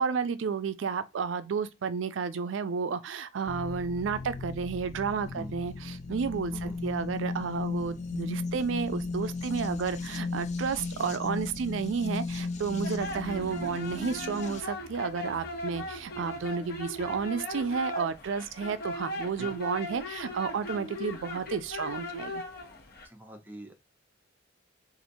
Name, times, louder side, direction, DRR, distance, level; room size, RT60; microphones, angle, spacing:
voice 1, 0.0-22.4, right 5 dB, 80° right, 0.4 m, -32 dB
sound 1, 3.5-14.6, left 3 dB, 35° left, 0.4 m, -36 dB
sound 2, 12.8-23.1, left 1 dB, 55° left, 0.8 m, -39 dB
voice 2, 23.0-23.7, right 1 dB, 10° right, 0.7 m, -44 dB
4.2 x 2.5 x 2.6 m
head